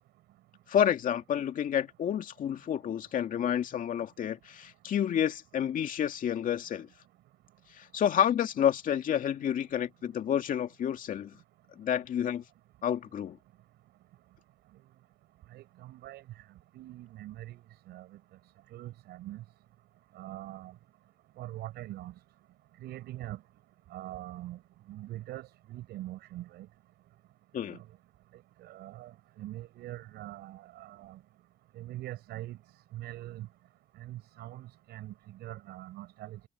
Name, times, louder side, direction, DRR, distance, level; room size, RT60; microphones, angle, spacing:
voice 1, 0.7-6.9 7.8-11.4 11.8-12.4 12.8-13.4 27.5-27.8, left 9 dB, 50° left, 2.3 m, -29 dB
voice 2, 15.5-16.2 16.7-17.6 17.9-18.1 18.7-19.4 20.2-20.7 21.4-22.1 22.8-23.4 23.9-24.6 24.9-26.7 27.7-27.8 28.6-29.1 29.4-31.2 31.8-32.6 32.9-33.5 34.0-36.4, right 15 dB, 80° right, 5.7 m, -43 dB
cardioid pair, 110°, 17 cm